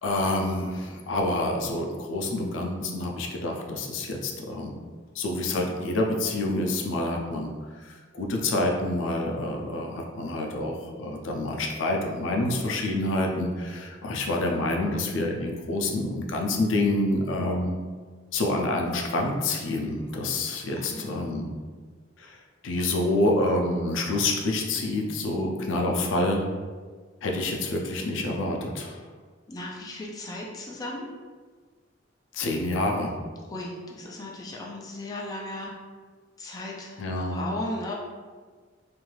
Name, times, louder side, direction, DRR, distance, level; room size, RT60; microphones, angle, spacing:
voice 1, 0.0-4.7 5.2-7.5 7.9-17.7 18.3-21.5 22.2-22.4 22.6-26.5 27.2-29.0 32.3-33.1 37.0-37.4, left 2 dB, 85° left, 1 dB, 0.4 m, -27 dB
voice 2, 20.7-21.0 29.5-31.1 33.5-35.7 36.4-37.9, left 1 dB, 20° left, -3 dB, 0.3 m, -36 dB
2.5 x 2.3 x 3.1 m, 1.5 s
head